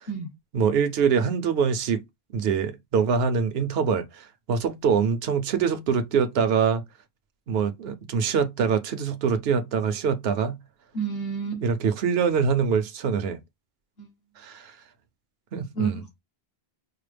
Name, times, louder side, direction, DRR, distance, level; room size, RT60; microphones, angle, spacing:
voice 1, 0.5-2.0 2.3-6.8 7.5-10.6 11.6-13.4 14.4-14.7 15.5-16.0, right 6 dB, 75° right, 0.9 m, -24 dB
voice 2, 10.9-11.6 14.0-14.1 15.7-16.2, right 5 dB, 65° left, 1.7 m, -30 dB
4.7 x 2.0 x 3.3 m
omnidirectional pair, 1.1 m